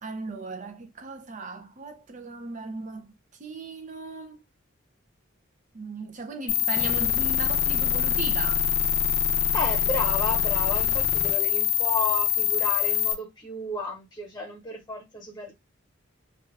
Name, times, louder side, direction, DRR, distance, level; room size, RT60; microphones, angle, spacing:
voice 1, 0.0-3.1 3.4-4.4 5.7-8.7, right 3 dB, 40° right, 0.5 m, -37 dB
sound 1, 6.5-13.1, left 9 dB, 55° left, 0.5 m, -24 dB
voice 2, 9.5-15.5, left 2 dB, 20° left, 1.0 m, -32 dB
2.4 x 2.3 x 3.1 m
head